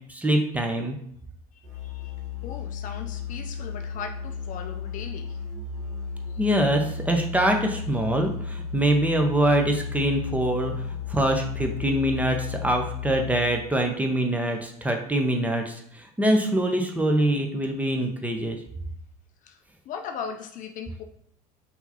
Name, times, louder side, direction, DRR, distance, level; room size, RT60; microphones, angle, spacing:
voice 1, 0.1-1.0 6.4-10.7 11.1-18.6, right 1 dB, 5° right, 3 dB, 0.7 m, -24 dB
voice 2, 1.5-2.2 2.4-5.4 6.3-6.4 19.4-21.0, left 7 dB, 40° left, 5 dB, 0.5 m, -38 dB
Musical instrument, 1.6-13.7, left 6 dB, 35° right, 1.1 m, -34 dB
5.7 x 2.8 x 2.8 m, 0.67 s
figure-of-eight pair, 70°, 20 cm